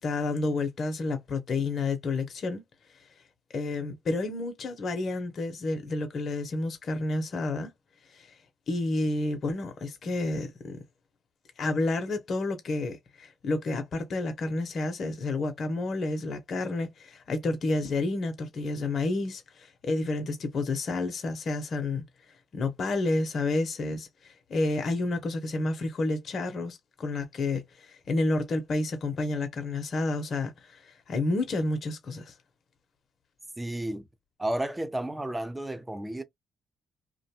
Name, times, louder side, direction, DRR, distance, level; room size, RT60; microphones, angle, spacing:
voice 1, 0.0-2.6 3.5-7.7 8.1-8.3 8.7-10.8 11.6-22.0 22.5-32.3, left 2 dB, 55° left, 0.7 m, -30 dB
voice 2, 33.6-34.0 34.4-36.2, right 1 dB, 10° right, 0.6 m, -32 dB
2.5 x 2.2 x 2.8 m
supercardioid pair, 70°, 0 cm